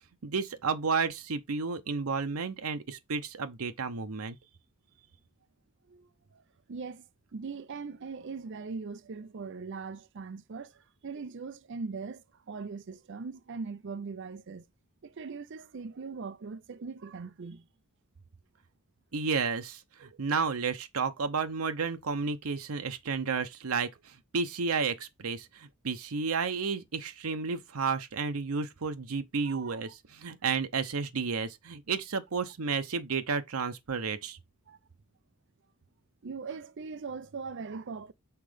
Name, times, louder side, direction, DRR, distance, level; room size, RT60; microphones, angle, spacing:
voice 1, 0.2-4.4 19.1-34.4, right 5 dB, 90° right, 0.7 m, -32 dB
voice 2, 1.9-2.2 5.9-6.4 6.7-14.6 15.0-17.7 20.0-20.2 29.4-29.8 34.7-34.8 36.2-38.1, right 4 dB, 60° right, 0.5 m, -41 dB
5.8 x 3.8 x 5.0 m
head